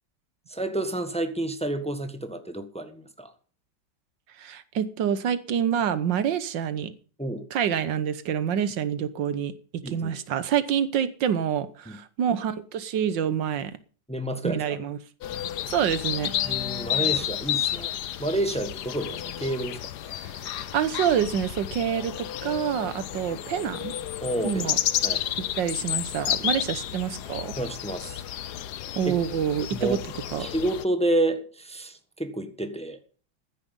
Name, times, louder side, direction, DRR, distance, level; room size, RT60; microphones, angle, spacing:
voice 1, 0.5-3.3 7.2-7.4 9.8-10.2 11.9-12.0 14.1-14.8 16.4-19.8 24.2-24.7 25.0-25.2 27.6-28.2 29.0-29.1 29.7-30.0 30.4-33.0, right 1 dB, 5° left, 1.3 m, -29 dB
voice 2, 4.4-6.9 7.5-9.5 9.9-13.8 14.4-15.0 15.7-16.3 20.2-23.9 24.4-24.8 25.5-27.5 29.0-30.0 30.3-30.5, right 8 dB, 85° right, 1.7 m, -27 dB
sound 1, 15.2-30.8, left 11 dB, 70° left, 1.3 m, -31 dB
14.5 x 10.0 x 5.4 m
omnidirectional pair, 1.9 m